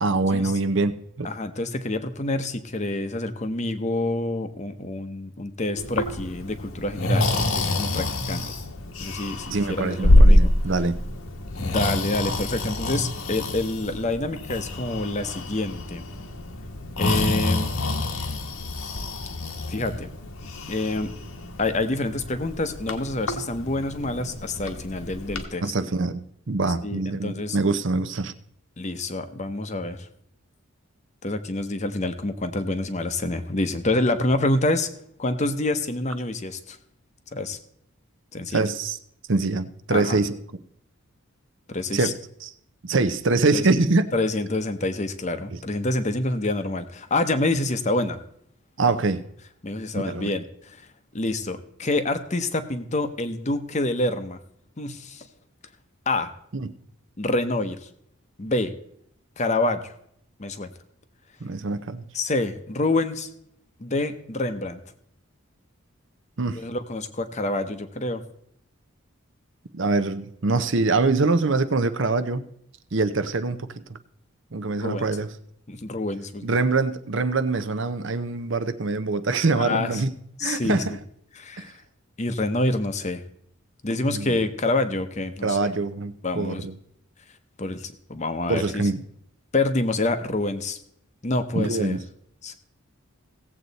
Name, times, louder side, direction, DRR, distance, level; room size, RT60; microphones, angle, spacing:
voice 1, 0.0-1.3 9.5-11.0 25.6-28.3 38.5-39.0 39.3-40.4 41.9-42.1 42.4-42.5 42.8-44.1 48.8-49.2 49.9-50.3 56.5-56.7 61.4-62.0 66.4-66.6 69.7-72.5 72.9-74.0 74.5-75.3 76.4-80.1 80.4-80.9 81.6-81.7 84.1-84.4 85.4-86.7 88.5-89.0 91.5-92.0, right 3 dB, 55° right, 11 dB, 0.7 m, -24 dB
voice 2, 1.2-8.5 9.0-10.5 11.6-16.0 17.0-17.7 19.7-20.1 20.7-21.1 21.6-25.6 26.8-27.6 28.8-30.1 31.2-34.9 35.2-36.8 37.3-37.6 38.3-38.6 39.9-40.2 41.7-42.1 43.5-43.6 44.1-48.2 49.6-50.8 51.1-54.4 54.8-55.3 56.1-56.3 57.2-57.9 58.4-58.7 59.4-59.9 60.4-60.7 62.1-63.3 63.8-64.8 66.6-68.2 74.8-75.1 75.7-76.5 79.6-80.0 80.4-80.8 81.4-81.8 82.2-83.2 83.8-85.7 86.2-86.7 87.6-88.9 89.5-90.8 91.2-92.0 92.4-92.5, left 2 dB, 30° left, 10 dB, 0.8 m, -27 dB
Breathing, 5.8-25.5, left 1 dB, 75° left, 1.3 m, -25 dB
16.5 x 7.8 x 4.0 m, 0.70 s
head